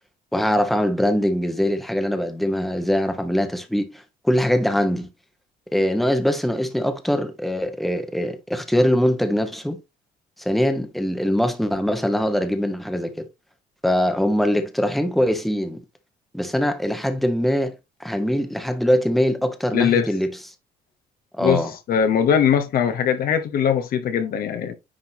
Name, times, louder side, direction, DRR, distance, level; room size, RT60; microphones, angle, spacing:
voice 1, 0.3-5.1 5.7-9.8 10.4-13.3 13.8-15.8 16.3-17.7 18.0-20.3 21.3-21.7, equal, ahead, 1.1 m, -22 dB
voice 2, 19.7-20.1 21.4-21.6 21.9-24.7, left 8 dB, 60° left, 1.0 m, -20 dB
9.9 x 3.8 x 2.9 m
cardioid pair, 110°, 17 cm